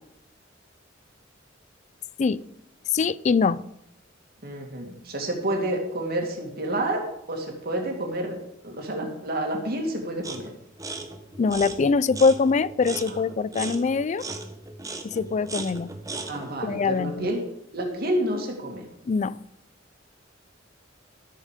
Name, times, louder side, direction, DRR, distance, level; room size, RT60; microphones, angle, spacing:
voice 1, 2.9-3.6 11.4-14.3 15.0-15.9 16.6-17.3 19.1-19.4, left 4 dB, 40° left, 0.4 m, -23 dB
voice 2, 4.4-8.4 8.6-10.5 16.3-17.4 17.7-18.9, right 1 dB, 55° right, 2.2 m, -29 dB
sound 1, 10.2-10.5 10.8-16.5, right 3 dB, 20° right, 1.0 m, -37 dB
13.5 x 6.5 x 5.0 m
head